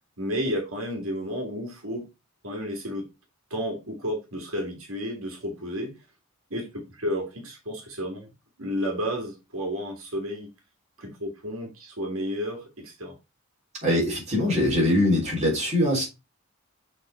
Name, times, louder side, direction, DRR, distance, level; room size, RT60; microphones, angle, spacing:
voice 1, 0.2-2.0 2.4-3.1 3.5-5.9 6.5-8.3 8.6-10.5 11.0-13.1, equal, 75° right, 2 dB, 2.2 m, -32 dB
voice 2, 13.8-16.1, left 1 dB, 30° right, -3 dB, 3.8 m, -22 dB
6.9 x 4.2 x 4.3 m, 0.25 s
head